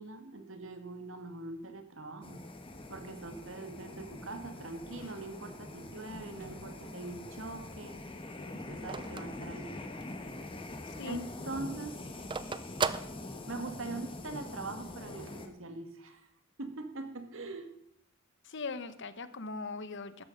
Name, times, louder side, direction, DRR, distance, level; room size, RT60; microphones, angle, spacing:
voice 1, 0.0-2.4 2.9-8.0 8.5-9.7 11.0-12.3 13.5-16.3 16.6-17.7, right 2 dB, 75° right, 7 dB, 1.8 m, -42 dB
sound 1, 2.2-15.5, left 2 dB, 25° left, 1.4 m, -44 dB
Sliding door, 3.2-8.1, left 2 dB, 85° left, 1.4 m, -59 dB
Telephone, 6.9-10.3 10.7-10.8 11.0-13.9, right 5 dB, 25° right, 0.5 m, -38 dB
voice 2, 10.9-11.2 18.4-20.2, left 3 dB, 65° left, 13 dB, 1.0 m, -40 dB
13.0 x 10.5 x 5.3 m, 0.76 s
head